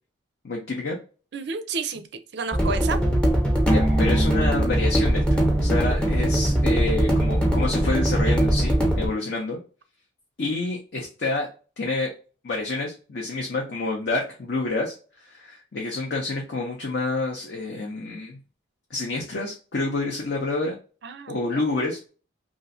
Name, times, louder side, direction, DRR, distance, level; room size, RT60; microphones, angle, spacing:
voice 1, 0.4-1.0 3.7-9.6 10.4-11.5 11.8-12.1 12.4-14.9 15.2-18.4 18.9-20.8 21.3-22.1, left 2 dB, 55° left, -1 dB, 0.6 m, -28 dB
voice 2, 1.3-2.1 2.3-3.0 21.0-21.6, right 4 dB, 55° right, 9 dB, 0.4 m, -30 dB
sound 1, 2.5-9.1, right 1 dB, 5° left, 0.5 m, -21 dB
3.0 x 2.5 x 2.6 m, 0.36 s
head